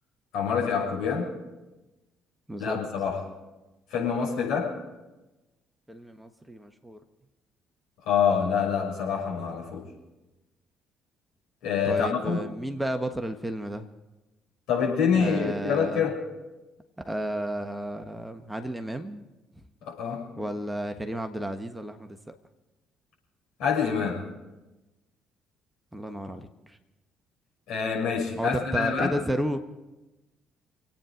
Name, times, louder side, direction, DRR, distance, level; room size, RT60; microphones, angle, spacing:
voice 1, 0.3-1.3 2.6-3.3 3.9-4.8 8.0-9.9 11.6-12.4 14.7-16.2 19.8-20.3 23.6-24.3 27.7-29.1, left 6 dB, 65° left, -4 dB, 6.3 m, -26 dB
voice 2, 5.9-7.0 11.9-13.9 15.1-16.1 17.0-19.2 20.4-22.3 25.9-26.8 28.4-29.6, right 1 dB, 10° right, 7 dB, 1.3 m, -32 dB
27.0 x 9.3 x 5.1 m, 1.1 s
figure-of-eight pair, 50°, 0 cm